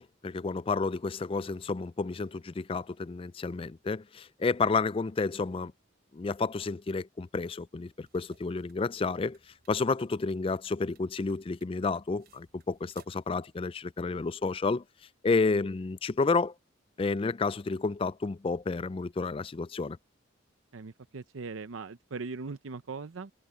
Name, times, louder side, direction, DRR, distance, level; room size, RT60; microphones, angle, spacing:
voice 1, 0.0-5.7 6.1-9.4 9.7-14.8 15.2-16.5 17.0-20.0, left 4 dB, 25° left, 0.3 m, -30 dB
sound 1, 7.9-13.3, right 5 dB, 50° right, 6.9 m, -63 dB
voice 2, 20.7-23.3, right 4 dB, 90° right, 0.7 m, -40 dB
head